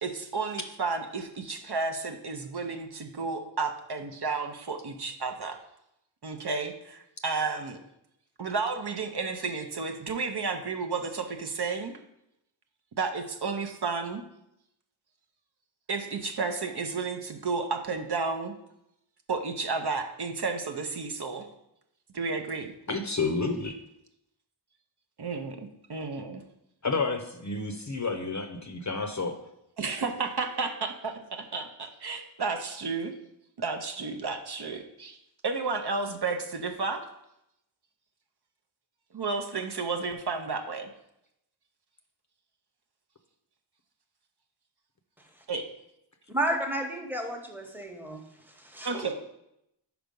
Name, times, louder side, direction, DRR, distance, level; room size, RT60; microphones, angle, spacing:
voice 1, 0.0-5.6 6.2-7.8 8.4-11.9 13.0-14.2 15.9-18.5 19.3-21.5 22.1-22.7 25.2-26.4 29.8-33.1 33.6-35.2 35.4-37.0 39.1-40.9 45.5-45.6 48.8-49.1, right 4 dB, 55° right, 5 dB, 0.7 m, -32 dB
voice 2, 22.9-23.8 26.8-29.3, left 3 dB, 35° left, 6 dB, 0.6 m, -30 dB
voice 3, 46.3-48.2 48.6-49.1, right 1 dB, 5° right, 3 dB, 1.0 m, -32 dB
5.1 x 4.6 x 5.2 m, 0.82 s
wide cardioid pair, 60°, 48 cm